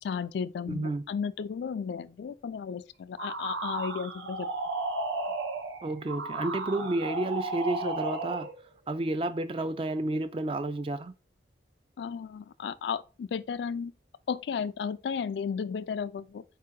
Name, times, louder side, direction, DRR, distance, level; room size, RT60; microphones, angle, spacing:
voice 1, 0.0-4.5 12.0-13.9 14.3-16.4, left 6 dB, 70° left, 0.3 m, -34 dB
voice 2, 0.7-1.0 5.8-8.5 8.9-11.1, right 2 dB, 30° right, 0.3 m, -31 dB
sound 1, 3.2-8.6, right 3 dB, 85° right, 0.8 m, -34 dB
4.5 x 2.8 x 3.6 m
head